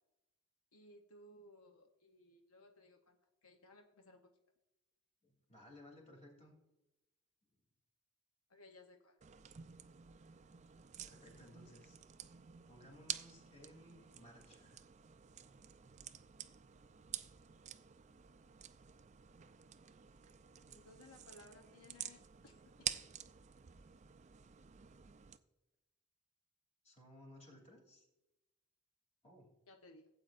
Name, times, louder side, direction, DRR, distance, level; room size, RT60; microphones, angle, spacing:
voice 1, 0.7-4.3 8.5-9.2 20.7-23.0 29.7-30.1, left 1 dB, 85° left, 4 dB, 0.8 m, -61 dB
voice 2, 5.2-6.6 11.0-12.0 12.6-14.8 26.8-28.1 29.2-29.5, left 1 dB, 30° left, -1 dB, 3.0 m, -59 dB
sound 1, 9.2-25.4, right 10 dB, 35° right, 0.4 m, -50 dB
16.0 x 8.5 x 2.5 m, 0.98 s
head